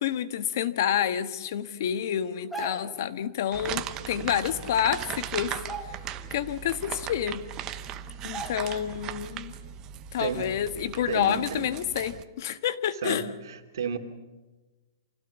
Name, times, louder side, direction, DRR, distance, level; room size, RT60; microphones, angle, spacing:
voice 1, 0.0-5.6 6.3-7.4 8.2-9.5 10.1-13.2, left 9 dB, 55° left, 11 dB, 1.5 m, -28 dB
sound 1, 2.3-3.1 4.5-4.6 4.9-5.2 5.5-6.4 6.8-6.9 7.6-7.7 8.3-8.9 9.3-9.5, right 3 dB, ahead, 2.7 m, -40 dB
sound 2, 3.5-12.2, right 10 dB, 25° right, 1.0 m, -38 dB
voice 2, 4.0-4.4 10.2-10.4 11.1-11.7 12.9-14.0, right 7 dB, 80° right, 6 dB, 2.8 m, -33 dB
28.0 x 17.0 x 7.1 m, 1.2 s
hypercardioid pair, 155°, 2 cm